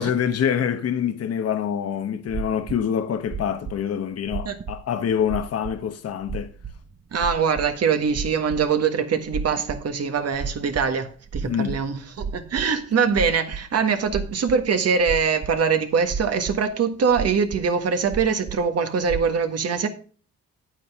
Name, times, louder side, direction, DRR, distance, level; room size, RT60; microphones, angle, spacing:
voice 1, 0.0-6.5 11.4-11.8, left 8 dB, 55° left, 1.0 m, -25 dB
sound 1, 2.3-2.8 3.3-3.8 4.3-4.8 5.1-5.8 6.1-8.7 9.3-9.9 10.2-13.8 14.1-14.7 15.0-15.7 16.0-16.6 17.1-17.6 18.0-18.6 19.0-19.2, right 5 dB, 35° right, 1.0 m, -32 dB
voice 2, 7.1-19.9, right 6 dB, 55° right, 1.6 m, -23 dB
9.2 x 9.1 x 3.6 m
cardioid pair, 90°, 30 cm